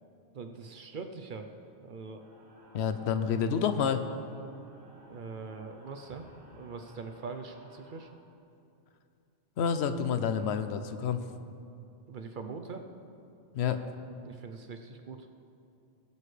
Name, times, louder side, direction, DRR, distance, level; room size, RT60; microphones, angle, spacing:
voice 1, 0.3-1.5 1.8-2.2 5.1-6.3 6.5-8.1 12.1-12.9 14.2-15.3, right 4 dB, 55° right, 6 dB, 0.8 m, -42 dB
sound 1, 2.2-8.1, right 1 dB, 30° right, 2.9 m, -57 dB
voice 2, 2.7-4.1 9.6-11.2 13.5-13.8, left 7 dB, 90° left, 9 dB, 0.9 m, -29 dB
18.5 x 8.2 x 3.3 m, 2.6 s
omnidirectional pair, 1.1 m